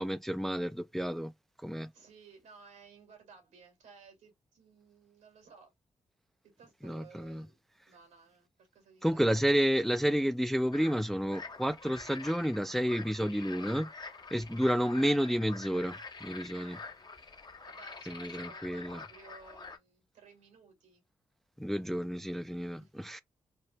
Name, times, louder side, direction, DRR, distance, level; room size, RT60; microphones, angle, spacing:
voice 1, 0.0-1.3 1.6-1.9 6.8-7.5 9.0-13.9 14.3-16.8 18.1-19.0 21.6-23.2, equal, ahead, 0.3 m, -30 dB
voice 2, 1.9-5.7 6.6-7.6 7.9-9.4 14.3-14.9 16.5-16.9 17.6-21.0 22.8-22.9, right 5 dB, 80° right, 1.5 m, -57 dB
sound 1, 10.7-19.8, left 4 dB, 35° left, 0.7 m, -47 dB
3.3 x 2.0 x 2.9 m
supercardioid pair, 45°, 12 cm